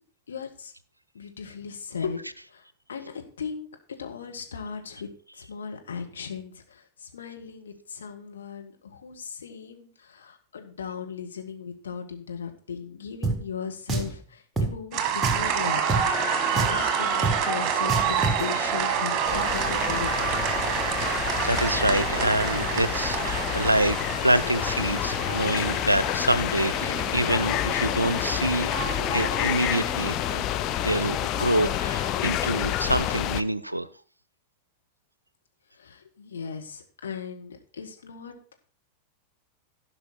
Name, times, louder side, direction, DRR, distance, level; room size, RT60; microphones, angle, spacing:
voice 1, 0.3-0.7 1.1-2.2 2.5-3.7 4.0-5.1 5.4-16.1 16.5-20.4 35.7-38.5, left 6 dB, 70° left, 3 dB, 1.7 m, -37 dB
Drum, 13.2-13.4 13.9-14.1 14.6-14.7 15.2-15.5 15.9-16.0 16.6-16.8 17.2-17.4 17.9-18.4, right 3 dB, 15° right, 1.4 m, -26 dB
sound 1, 14.9-32.6, right 7 dB, 30° right, 1.7 m, -29 dB
sound 2, 19.2-33.4, left 13 dB, 35° left, 0.5 m, -29 dB
voice 2, 21.4-28.7 29.1-30.4 30.8-33.9, right 1 dB, 85° right, 17 dB, 0.5 m, -26 dB
15.0 x 5.7 x 4.4 m, 0.43 s
figure-of-eight pair, 90°, 0 cm